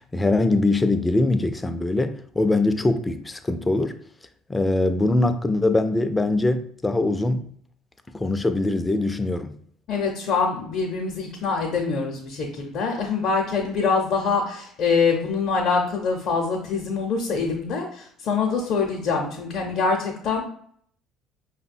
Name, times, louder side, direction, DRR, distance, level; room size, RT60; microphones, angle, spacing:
voice 1, 0.1-3.9 4.5-7.5 8.1-9.6, left 2 dB, 20° left, 0.4 m, -22 dB
voice 2, 9.9-20.4, left 5 dB, 60° left, 0.6 m, -24 dB
5.1 x 2.1 x 2.5 m
hypercardioid pair, 65°, 0 cm